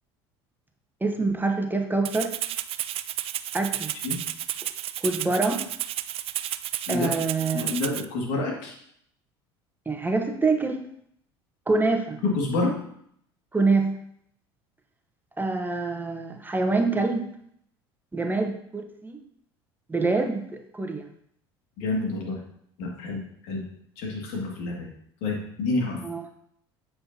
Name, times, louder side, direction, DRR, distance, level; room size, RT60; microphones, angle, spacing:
voice 1, 1.0-2.3 3.5-3.9 5.0-5.6 6.9-7.7 9.9-10.8 11.7-12.2 13.5-14.0 15.4-17.3 18.1-19.2 19.9-21.1 26.0-26.2, right 3 dB, 15° right, 4 dB, 1.0 m, -25 dB
Rattle (instrument), 2.0-8.0, right 12 dB, 45° right, 0.4 m, -32 dB
voice 2, 7.5-8.7 12.2-12.8 21.8-22.4 22.8-23.7 24.0-24.9 25.2-26.0, left 3 dB, 70° left, -1 dB, 2.2 m, -28 dB
7.9 x 6.7 x 2.8 m, 0.68 s
hypercardioid pair, 70°, 13 cm